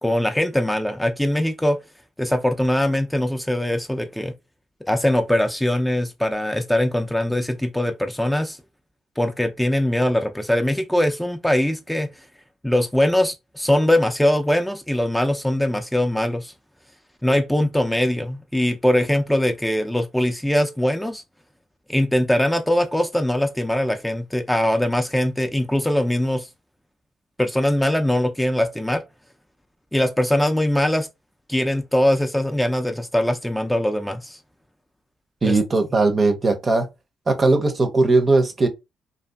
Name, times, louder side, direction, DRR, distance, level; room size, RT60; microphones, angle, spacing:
voice 1, 0.0-1.8 2.2-4.3 4.9-8.6 9.2-12.1 12.6-16.5 17.2-21.2 21.9-26.5 27.4-29.0 29.9-31.1 31.5-34.4 35.4-35.6, left 1 dB, 5° left, 0.4 m, -21 dB
voice 2, 35.4-36.9 37.3-38.7, right 3 dB, 40° right, 0.6 m, -18 dB
2.6 x 2.4 x 2.2 m
hypercardioid pair, 50°, 0 cm